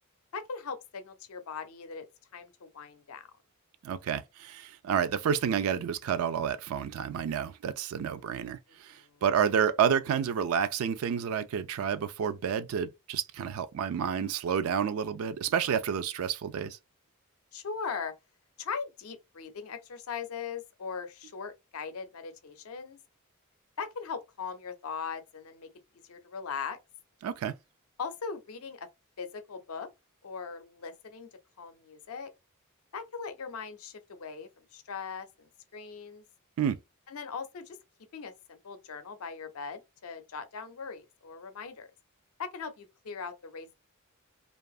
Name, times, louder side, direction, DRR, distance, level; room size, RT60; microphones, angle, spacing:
voice 1, 0.3-2.1 2.3-3.3 8.2-8.4 8.9-9.2 17.5-18.1 18.6-23.0 23.8-25.7 26.1-26.8 28.0-28.9 29.2-29.9 30.2-31.3 31.6-32.3 32.9-36.2 37.1-37.8 38.1-41.9 42.4-43.7, left 5 dB, 75° left, 0.5 m, -40 dB
voice 2, 3.8-16.8 27.2-27.5 36.6-36.8, right 7 dB, 75° right, 0.3 m, -30 dB
2.6 x 2.4 x 2.3 m
head